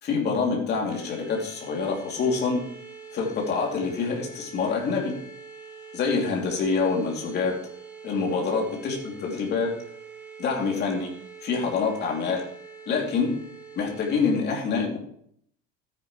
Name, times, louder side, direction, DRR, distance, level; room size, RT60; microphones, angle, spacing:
voice 1, 0.0-2.6 3.1-5.1 5.9-7.5 8.0-9.7 10.4-11.1 11.4-12.4 12.9-13.3 13.8-15.0, left 4 dB, 35° left, -1 dB, 2.8 m, -26 dB
sound 1, 0.9-14.4, right 5 dB, 5° right, 3.1 m, -44 dB
13.0 x 9.8 x 3.1 m, 0.65 s
cardioid pair, 165°, 30 cm